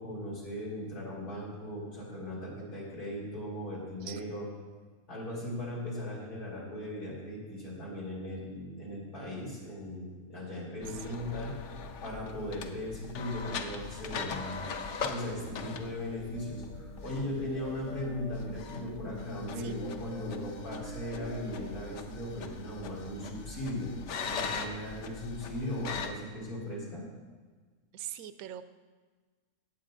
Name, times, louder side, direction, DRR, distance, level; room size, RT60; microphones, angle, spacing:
voice 1, 0.0-4.5 5.1-11.6 12.0-14.7 15.1-23.9 24.2-27.1, left 1 dB, 90° left, -6 dB, 3.8 m, -38 dB
sound 1, 10.8-26.1, left 5 dB, 60° left, 0.9 m, -41 dB
voice 2, 10.9-11.4 19.6-19.8 27.9-28.6, right 11 dB, 75° right, 12 dB, 1.0 m, -43 dB
sound 2, 16.3-21.8, left 1 dB, 30° left, 1.1 m, -46 dB
17.5 x 8.1 x 2.6 m, 1.4 s
omnidirectional pair, 1.6 m